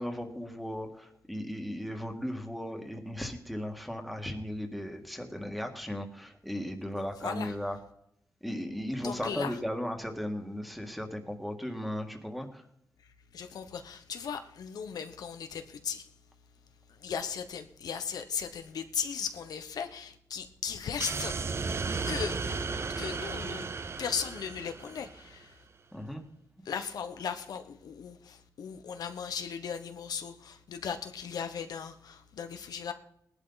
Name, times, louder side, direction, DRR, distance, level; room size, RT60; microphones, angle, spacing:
voice 1, 0.0-7.8 8.4-12.6 25.9-26.2, equal, ahead, 1.9 m, -36 dB
voice 2, 7.0-7.5 9.0-9.6 13.3-16.1 16.9-21.4 22.1-22.7 23.0-25.6 26.6-32.9, left 7 dB, 85° left, 1.1 m, -37 dB
sound 1, 21.0-25.4, right 4 dB, 40° right, 0.7 m, -34 dB
19.5 x 11.0 x 4.1 m
wide cardioid pair, 120°, 6 cm